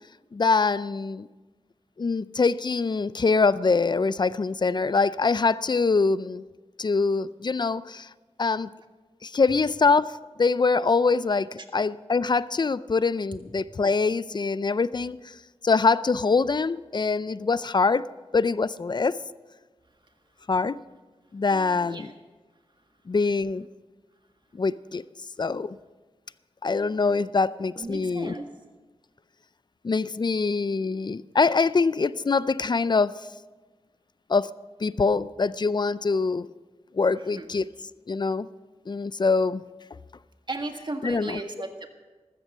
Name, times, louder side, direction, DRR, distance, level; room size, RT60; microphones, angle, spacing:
voice 1, 0.3-1.3 2.0-6.4 6.8-8.1 8.4-8.7 9.2-15.3 15.6-18.0 18.3-19.2 20.5-20.8 21.3-22.1 23.1-23.7 24.5-25.0 25.4-25.8 26.6-28.4 29.8-33.2 34.3-34.5 34.8-36.5 36.9-37.6 38.1-38.5 38.9-39.6 41.0-41.4, left 4 dB, 40° left, 0.4 m, -24 dB
voice 2, 27.8-28.5 37.1-37.5 40.5-41.9, right 2 dB, 45° right, 1.7 m, -35 dB
14.0 x 13.5 x 5.5 m
wide cardioid pair, 60°, 11 cm